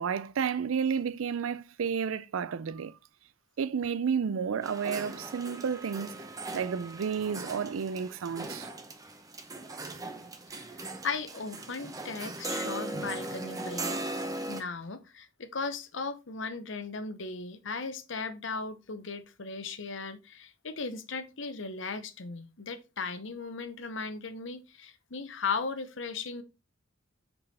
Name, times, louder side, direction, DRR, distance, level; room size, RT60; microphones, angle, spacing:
voice 1, 0.0-3.0 3.6-6.3 6.5-8.7, right 6 dB, 85° right, 0.4 m, -31 dB
sound 1, 4.6-14.6, right 2 dB, 20° right, 0.7 m, -39 dB
voice 2, 10.7-14.0 14.5-26.4, left 4 dB, 65° left, 0.9 m, -37 dB
5.3 x 4.6 x 4.1 m
head